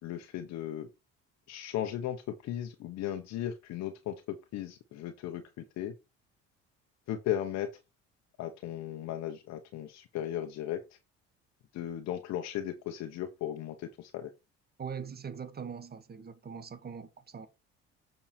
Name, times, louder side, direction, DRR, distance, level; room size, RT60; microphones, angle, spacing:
voice 1, 0.0-0.9 1.5-5.9 7.1-7.7 8.4-11.0 11.7-14.3, left 11 dB, 65° left, 1.2 m, -36 dB
voice 2, 14.8-17.5, right 6 dB, 35° right, 1.5 m, -42 dB
8.6 x 5.9 x 4.5 m
supercardioid pair, 85°, 29 cm